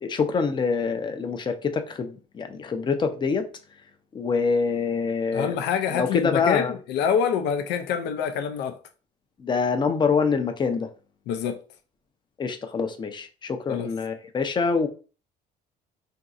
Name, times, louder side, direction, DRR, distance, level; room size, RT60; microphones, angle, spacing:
voice 1, 0.0-3.5 4.1-5.6 5.9-6.7 9.4-10.9 12.4-14.9, left 5 dB, 25° left, 0.5 m, -25 dB
voice 2, 5.3-8.8 11.3-11.6 13.7-13.9, left 7 dB, 80° left, 0.5 m, -26 dB
3.8 x 2.7 x 2.4 m
cardioid pair, 110°, 17 cm